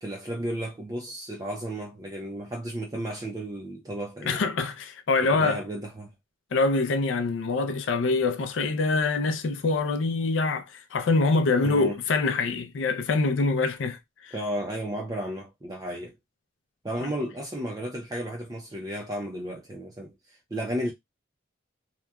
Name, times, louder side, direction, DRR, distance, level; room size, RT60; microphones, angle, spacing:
voice 1, 0.0-4.4 5.3-6.1 11.6-12.0 14.3-16.1 16.8-20.9, right 1 dB, 20° right, 0.5 m, -33 dB
voice 2, 4.3-5.6 6.5-14.3, left 3 dB, 80° left, 0.4 m, -25 dB
2.9 x 2.2 x 2.2 m
head